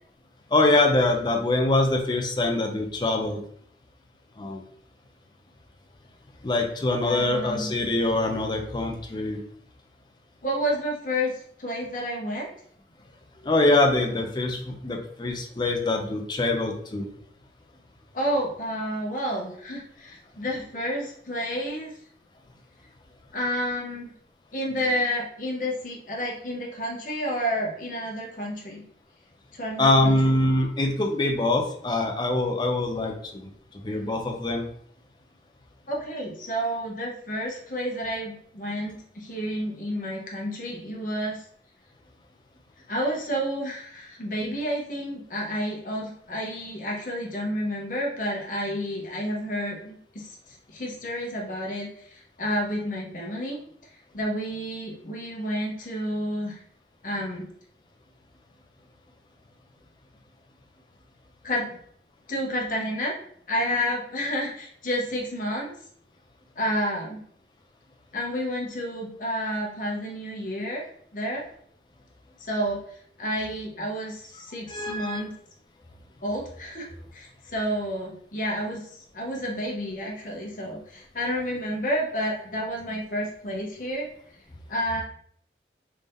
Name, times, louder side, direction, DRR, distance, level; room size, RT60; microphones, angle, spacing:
voice 1, 0.5-3.4 4.4-4.6 6.4-9.4 13.4-17.1 29.8-33.5 33.8-34.7 74.7-75.2, left 2 dB, 25° left, 2 dB, 0.5 m, -24 dB
voice 2, 7.0-7.7 10.4-12.5 18.1-21.9 23.3-24.1 24.5-28.8 29.5-30.2 35.9-41.4 42.9-50.4 50.7-53.6 54.1-56.6 57.0-57.5 61.4-61.8 62.3-63.1 63.5-65.7 66.6-67.2 68.1-71.4 72.4-72.8 73.2-75.3 76.2-78.9 79.1-84.1 84.7-85.0, equal, 50° left, -2 dB, 0.9 m, -30 dB
3.4 x 2.7 x 3.4 m, 0.63 s
head